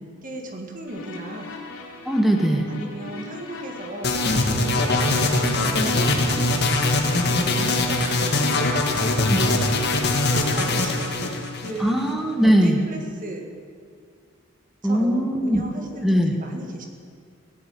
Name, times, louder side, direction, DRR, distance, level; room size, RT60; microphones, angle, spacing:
voice 1, 0.2-1.5 2.7-4.1 4.8-8.7 10.3-12.0 12.4-13.5 14.8-16.9, right 1 dB, 40° right, 2 dB, 1.9 m, -36 dB
sound 1, 0.9-11.3, left 3 dB, 75° left, 2.9 m, -39 dB
voice 2, 2.1-2.7 9.3-9.5 11.8-12.8 14.8-15.6 16.0-16.4, equal, ahead, 3 dB, 1.2 m, -20 dB
sound 2, 4.0-12.1, left 2 dB, 50° left, 1.6 m, -22 dB
17.5 x 7.9 x 9.3 m, 2.1 s
head